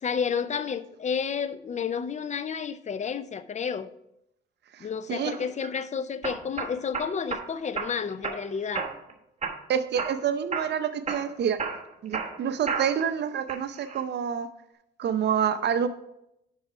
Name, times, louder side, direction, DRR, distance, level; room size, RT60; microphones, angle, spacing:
voice 1, 0.0-3.9 4.8-8.9, left 6 dB, 35° left, 0.6 m, -31 dB
voice 2, 4.7-5.3 9.7-11.6 12.0-14.5 15.0-15.9, right 8 dB, 60° right, 0.7 m, -27 dB
sound 1, 5.3-5.7 6.2-7.4 7.8-8.4 8.7-9.1 9.4-10.2 10.5-10.8 11.1-13.1 13.5-14.0, right 5 dB, 35° right, 1.2 m, -32 dB
7.2 x 5.7 x 4.8 m
cardioid pair, 90°, 20 cm